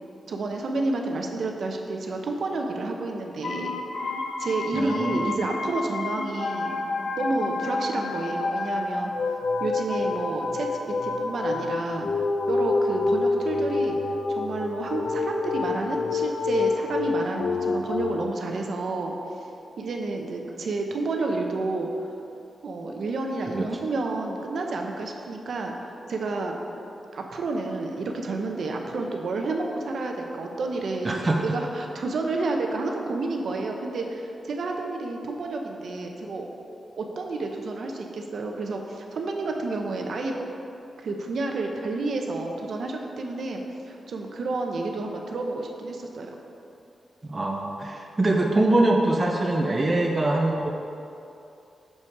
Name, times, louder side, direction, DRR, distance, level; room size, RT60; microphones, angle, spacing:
voice 1, 0.3-3.7 4.4-6.8 7.2-9.1 9.6-12.1 12.5-14.0 14.3-19.1 19.8-21.9 22.6-26.6 27.1-31.2 31.5-36.5 37.0-40.4 41.0-43.6 43.9-46.3, right 3 dB, 55° right, 2 dB, 0.7 m, -30 dB
sound 1, 3.4-18.2, left 3 dB, 60° left, 0.5 m, -28 dB
voice 2, 4.7-5.5 23.5-23.7 31.0-31.4 47.2-50.7, right 2 dB, 20° right, 0 dB, 0.5 m, -23 dB
6.9 x 5.8 x 4.6 m, 2.7 s
wide cardioid pair, 175°, 0 cm